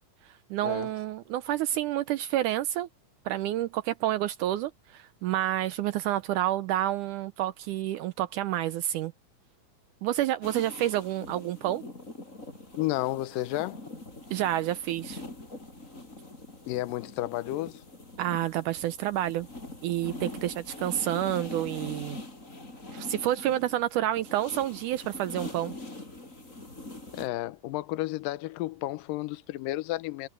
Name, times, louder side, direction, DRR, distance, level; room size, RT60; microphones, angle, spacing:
voice 1, 0.5-2.9 3.3-9.1 10.0-11.8 14.3-15.2 18.2-19.5 19.8-22.2 22.9-25.7, right 13 dB, 75° right, 2.1 m, -29 dB
sound 1, 10.4-27.3, left 2 dB, 20° left, 5.7 m, -43 dB
voice 2, 12.8-13.8 16.7-17.8 27.1-30.3, left 17 dB, 85° left, 2.4 m, -32 dB
omnidirectional pair, 3.9 m